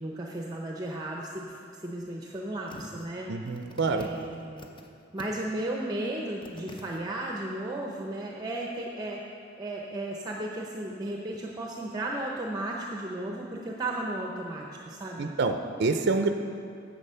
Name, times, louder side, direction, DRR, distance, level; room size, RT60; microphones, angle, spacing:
voice 1, 0.0-3.3 3.9-4.7 5.1-9.2 9.6-15.3, right 1 dB, 20° right, -1 dB, 0.7 m, -34 dB
sound 1, 2.7-3.1 3.5-4.9 5.2-5.6 6.0-6.1 6.4-7.0 7.5-7.6, left 2 dB, 25° left, 0.7 m, -45 dB
voice 2, 3.3-4.1 15.2-16.3, right 3 dB, 60° right, 6 dB, 0.5 m, -27 dB
9.8 x 7.5 x 5.6 m, 2.6 s
head